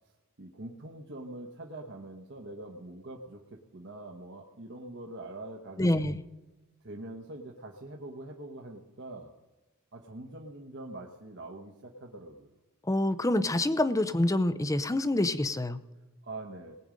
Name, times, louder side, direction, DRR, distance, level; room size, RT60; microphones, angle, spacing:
voice 1, 0.4-6.1 6.8-9.3 9.9-12.5 16.2-16.8, right 2 dB, 55° right, 1 dB, 1.1 m, -44 dB
voice 2, 5.8-6.2 12.8-15.8, left 1 dB, 15° left, 12 dB, 0.5 m, -27 dB
19.5 x 8.8 x 5.1 m, 1.1 s
head